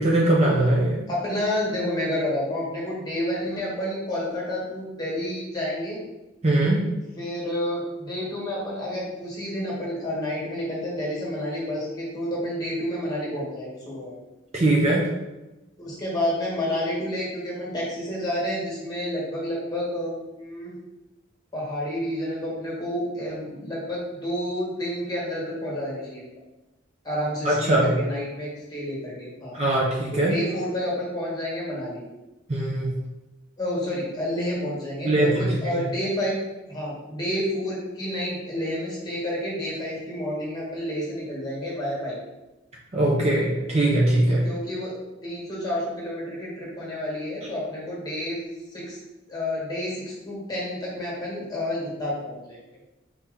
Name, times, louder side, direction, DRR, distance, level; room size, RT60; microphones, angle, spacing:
voice 1, 0.0-1.0 6.4-6.8 14.5-15.1 27.4-27.9 29.5-30.3 32.5-32.9 35.0-35.8 42.9-44.4, right 1 dB, 30° right, -4 dB, 0.6 m, -21 dB
voice 2, 1.1-6.0 7.2-14.2 15.8-20.7 21.5-26.2 27.0-29.5 30.1-32.0 33.6-36.4 36.7-42.2 44.3-44.9 45.2-48.4 48.7-49.0 49.3-52.6, left 1 dB, 20° left, -5 dB, 1.4 m, -29 dB
4.3 x 2.9 x 3.8 m, 1.0 s
head